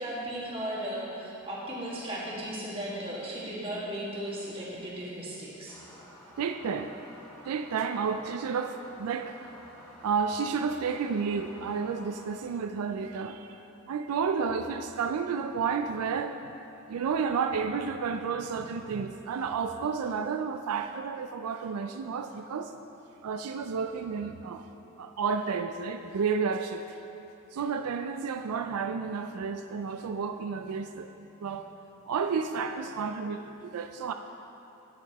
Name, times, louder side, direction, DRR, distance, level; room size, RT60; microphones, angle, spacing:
voice 1, 0.0-5.8, right 1 dB, 25° right, -7 dB, 1.8 m, -36 dB
sound 1, 5.7-12.3, equal, 10° left, 2.1 m, -51 dB
voice 2, 6.4-6.9 7.5-9.4 10.0-13.6 13.9-16.4 16.9-22.7 23.2-24.6 25.0-27.0 27.5-31.1 31.4-31.7 32.1-34.1, right 5 dB, 90° right, 7 dB, 0.4 m, -31 dB
10.5 x 10.0 x 3.0 m, 3.0 s
head